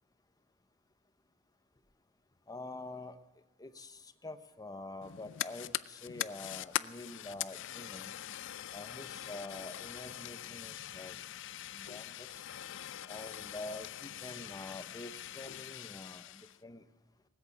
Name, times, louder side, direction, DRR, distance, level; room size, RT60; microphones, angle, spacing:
voice 1, 2.5-3.2 3.6-8.2 8.7-11.2 11.7-12.4 13.1-16.8, left 2 dB, 20° left, 10 dB, 0.9 m, -46 dB
Fire, 5.0-16.6, left 12 dB, 65° left, 0.5 m, -42 dB
19.5 x 8.2 x 8.2 m, 1.2 s
head